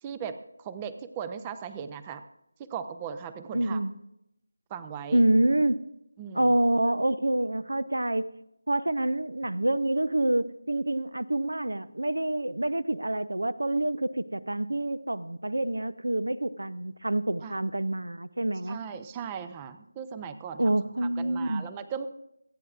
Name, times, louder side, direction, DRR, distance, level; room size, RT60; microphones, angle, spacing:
voice 1, 0.0-2.2 2.6-3.8 4.7-5.2 6.2-6.6 17.4-17.5 18.7-20.8 21.2-22.1, right 7 dB, 15° right, 11 dB, 0.5 m, -38 dB
voice 2, 3.5-3.9 5.1-5.8 6.3-8.3 8.7-18.8 20.6-21.7, right 1 dB, 75° right, 17 dB, 0.7 m, -27 dB
26.5 x 9.5 x 2.5 m, 0.81 s
figure-of-eight pair, 165°, 0 cm